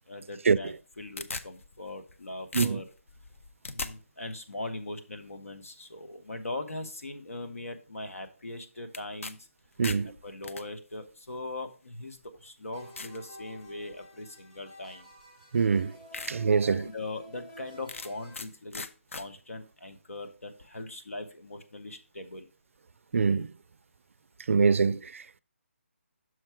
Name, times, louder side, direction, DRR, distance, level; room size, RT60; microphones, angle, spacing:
voice 1, 0.1-2.9 3.7-9.5 10.0-15.1 16.3-18.8 19.1-22.5, left 2 dB, 90° left, 1.2 m, -40 dB
sound 1, 0.7-2.2 2.5-3.9 8.9-9.3 9.6-10.6 11.5-11.6 12.2-12.3 13.0-13.2 13.7-14.0 15.2-15.3 15.7-15.8 16.1-16.3 16.8-16.9 17.9-18.5 18.7-19.2, left 4 dB, 70° left, 0.6 m, -38 dB
voice 2, 9.8-10.1 15.5-15.9 16.3-16.9 23.1-23.5 24.5-25.4, right 5 dB, 70° right, 0.3 m, -24 dB
sound 2, 12.7-18.4, left 1 dB, 25° left, 1.8 m, -51 dB
6.4 x 4.6 x 4.4 m
hypercardioid pair, 165°, 7 cm